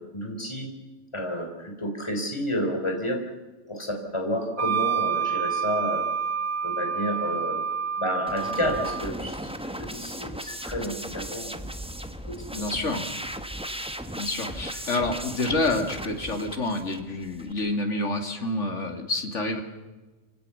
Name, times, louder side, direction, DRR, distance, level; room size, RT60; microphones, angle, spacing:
voice 1, 0.1-0.7 1.1-3.2 3.7-6.0 6.6-7.6 8.0-9.5 9.8-11.5 12.2-12.6, equal, 25° left, 2 dB, 4.0 m, -30 dB
Wind instrument woodwind instrument, 4.6-9.1, right 7 dB, 65° right, 1.2 m, -28 dB
sound 1, 8.3-17.5, equal, 5° right, 1.1 m, -36 dB
voice 2, 12.5-13.1 14.2-19.6, left 2 dB, 75° left, 4 dB, 3.0 m, -28 dB
26.5 x 17.5 x 7.1 m, 1.2 s
omnidirectional pair, 1.2 m